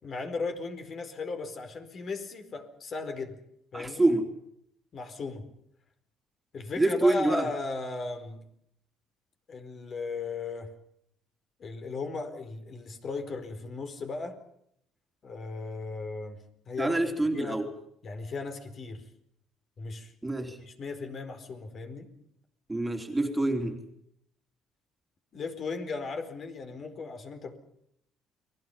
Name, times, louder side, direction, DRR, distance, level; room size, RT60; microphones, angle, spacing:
voice 1, 0.0-3.4 3.7-4.1 4.9-5.5 6.5-8.4 9.5-10.7 11.6-14.4 15.2-17.0 17.3-17.6 18.0-19.1 19.8-20.1 20.5-22.1 25.3-27.6, left 3 dB, 45° left, 7 dB, 4.5 m, -36 dB
voice 2, 3.7-4.3 6.8-7.5 16.8-17.7 20.2-20.6 22.7-23.8, right 2 dB, 10° right, 4 dB, 3.3 m, -26 dB
30.0 x 21.5 x 5.7 m, 0.72 s
cardioid pair, 110°, 0 cm